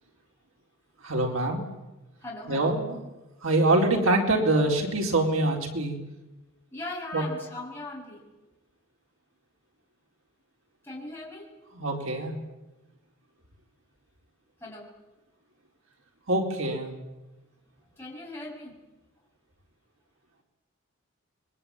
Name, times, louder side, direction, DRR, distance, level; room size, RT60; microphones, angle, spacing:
voice 1, 1.0-1.6 2.5-3.0 3.4-6.0 7.1-7.2 11.7-12.4 16.3-16.9, right 2 dB, 85° right, 1 dB, 4.4 m, -24 dB
voice 2, 2.2-2.8 6.7-8.2 10.8-11.6 14.6-14.9 18.0-18.8, left 2 dB, 10° left, -3 dB, 7.9 m, -39 dB
28.5 x 22.5 x 8.9 m, 1.0 s
head